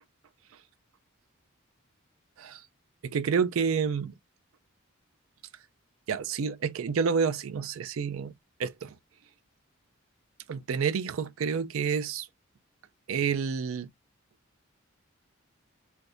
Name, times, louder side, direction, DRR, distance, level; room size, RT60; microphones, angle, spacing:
voice 1, 3.0-4.1 6.1-8.3 8.6-9.0 10.5-12.3 13.1-13.9, right 6 dB, 70° right, 0.4 m, -29 dB
3.4 x 2.7 x 2.5 m
head